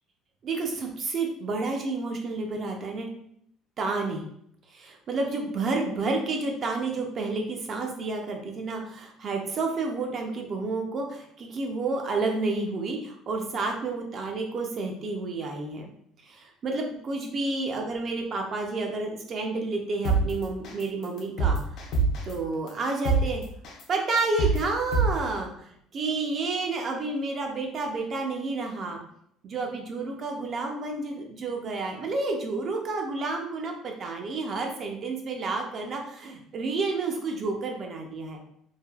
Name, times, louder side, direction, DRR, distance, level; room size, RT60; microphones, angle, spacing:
voice 1, 0.4-3.1 3.8-4.3 4.7-15.9 16.2-21.9 22.2-23.4 23.9-29.0 29.4-38.4, right 3 dB, 30° right, 2 dB, 0.4 m, -30 dB
sound 1, 20.0-20.2 20.6-20.8 21.2-22.3 22.7-22.8 23.0-23.2 23.6-23.8 24.2-24.6 24.9-25.1, right 5 dB, 45° left, 0.5 m, -23 dB
3.2 x 2.6 x 2.3 m, 0.70 s
cardioid pair, 180°, 0 cm